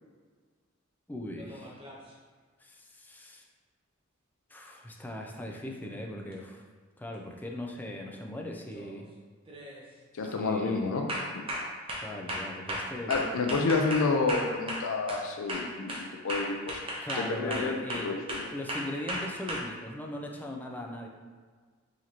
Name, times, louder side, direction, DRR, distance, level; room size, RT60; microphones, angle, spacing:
voice 1, 1.1-1.8 2.6-3.5 4.5-6.6 7.0-9.1 10.2-10.9 12.0-13.2 17.0-18.1 18.5-21.1, left 1 dB, 10° left, 1 dB, 0.4 m, -39 dB
sound 1, 1.4-2.1 6.3-6.4 7.9-8.2 8.7-9.0 9.5-9.8 10.3-10.5 11.1-15.2 15.5-19.6, equal, 25° right, 0.7 m, -36 dB
voice 2, 10.2-11.1 11.3-11.4 13.1-15.9 16.2-16.8 17.2-17.7 18.0-18.4, left 4 dB, 80° left, 2 dB, 0.5 m, -29 dB
4.9 x 2.9 x 2.8 m, 1.5 s
head